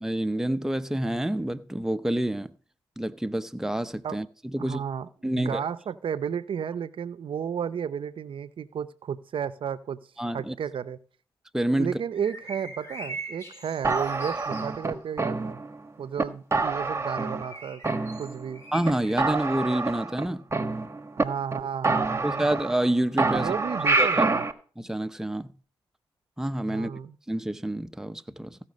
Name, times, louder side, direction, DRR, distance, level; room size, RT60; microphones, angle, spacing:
voice 1, 0.0-2.5 3.0-4.8 5.2-5.6 10.2-10.6 11.5-11.9 18.7-20.5 22.2-23.5 24.0-24.3 24.8-25.5 26.4-26.9 27.3-28.6, right 1 dB, 5° right, 0.7 m, -28 dB
voice 2, 4.6-10.0 10.3-11.0 11.8-15.6 16.0-17.8 18.2-18.6 21.1-22.5 23.3-24.5 26.7-27.1, right 8 dB, 60° right, 0.7 m, -33 dB
sound 1, 12.1-14.8 17.2-19.1, right 1 dB, 25° left, 4.4 m, -42 dB
sound 2, 13.8-15.8 16.2-16.3 16.5-17.6 17.8-18.6 18.8-18.9 19.2-21.2 21.5-21.6 21.8-22.9 23.2-24.5, right 3 dB, 25° right, 1.2 m, -27 dB
16.0 x 5.8 x 5.3 m
cardioid pair, 60°, 10 cm